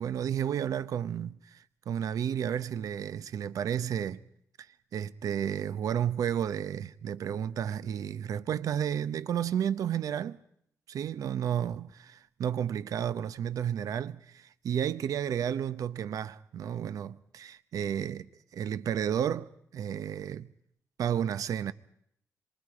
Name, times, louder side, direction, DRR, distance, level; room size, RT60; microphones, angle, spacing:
voice 1, 0.0-4.2 4.9-10.4 10.9-20.5 21.0-21.7, right 9 dB, 80° right, 0.8 m, -32 dB
26.0 x 24.0 x 5.0 m
cardioid pair, 105°, 6 cm